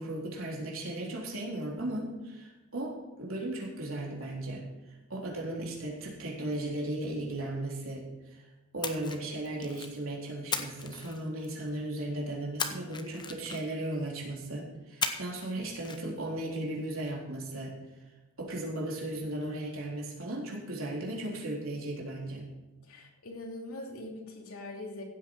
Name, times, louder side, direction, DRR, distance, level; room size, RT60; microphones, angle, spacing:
voice 1, 0.0-4.6 5.1-8.4 8.7-17.7 18.4-22.5, right 1 dB, 70° right, -2 dB, 3.7 m, -36 dB
Splash splatter, 8.8-10.0 10.5-11.7 12.6-13.9 15.0-15.5 15.8-16.0, left 5 dB, 20° left, 0.9 m, -36 dB
voice 2, 22.8-25.0, left 2 dB, 75° left, 1 dB, 2.8 m, -42 dB
15.5 x 8.7 x 4.8 m, 1.1 s
head